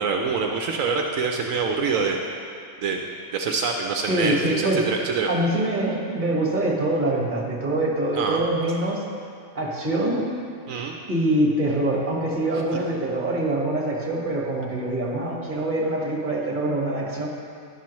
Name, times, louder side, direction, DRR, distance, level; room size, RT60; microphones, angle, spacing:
voice 1, 0.0-2.2 2.8-3.0 3.3-5.3 8.1-8.4 10.7-11.0, right 5 dB, 80° right, 2 dB, 1.1 m, -25 dB
voice 2, 4.1-4.9 5.3-9.0 9.5-10.2 11.1-17.3, right 1 dB, 35° right, -2 dB, 1.7 m, -24 dB
11.5 x 11.0 x 3.1 m, 2.4 s
omnidirectional pair, 1.4 m